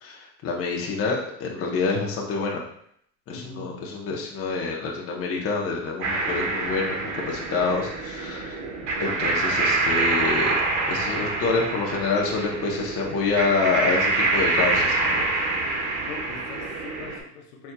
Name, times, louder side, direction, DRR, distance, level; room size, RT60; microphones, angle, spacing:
voice 1, 0.0-2.6 3.3-8.6 9.0-10.5 10.9-15.2, left 4 dB, 30° left, -1 dB, 0.9 m, -27 dB
voice 2, 3.3-3.9 16.0-17.7, left 4 dB, 70° left, 2 dB, 0.8 m, -41 dB
sound 1, 6.0-17.2, right 3 dB, 65° right, 1.2 m, -26 dB
4.4 x 4.2 x 2.2 m, 0.68 s
supercardioid pair, 140°, 44 cm